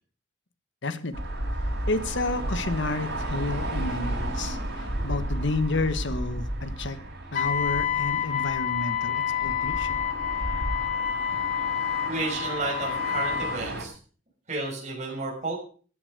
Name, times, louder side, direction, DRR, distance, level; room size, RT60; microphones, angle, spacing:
voice 1, 0.8-1.1 1.9-7.0 7.3-10.0, left 2 dB, 60° left, 11 dB, 1.4 m, -30 dB
sound 1, 1.1-13.8, right 1 dB, 55° right, 7.2 m, -33 dB
Wind instrument woodwind instrument, 7.4-13.6, left 9 dB, 40° left, 1.4 m, -28 dB
voice 2, 12.1-14.0 14.5-15.6, right 2 dB, 35° right, -2 dB, 6.7 m, -31 dB
15.0 x 10.0 x 6.7 m, 0.42 s
head